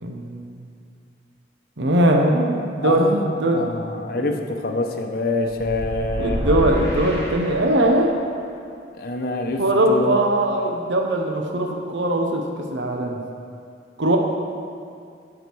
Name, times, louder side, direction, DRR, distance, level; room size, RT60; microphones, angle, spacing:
voice 1, 0.0-0.6 1.8-3.6 4.1-4.2 6.2-8.2 9.6-12.4 12.7-13.2 14.0-14.2, right 1 dB, 85° right, 1 dB, 0.9 m, -20 dB
voice 2, 2.8-6.4 8.9-10.2, left 2 dB, 55° left, 3 dB, 0.7 m, -26 dB
sound 1, 5.6-8.1, equal, 15° left, 1.6 m, -28 dB
13.5 x 4.9 x 4.6 m, 2.3 s
head